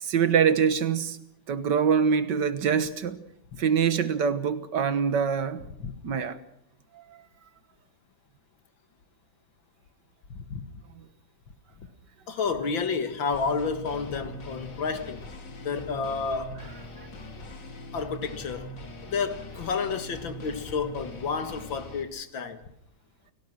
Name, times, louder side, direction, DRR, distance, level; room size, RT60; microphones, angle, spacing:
voice 1, 0.0-1.2 1.5-3.2 3.6-5.6 6.0-6.4, right 7 dB, 65° right, 1.9 m, -24 dB
voice 2, 10.3-10.6 12.3-15.2 15.6-16.6 17.9-18.7 19.0-22.6, left 5 dB, 90° left, 2.6 m, -30 dB
sound 1, 13.3-22.0, left 1 dB, 65° left, 3.2 m, -42 dB
29.5 x 17.5 x 6.3 m
omnidirectional pair, 2.1 m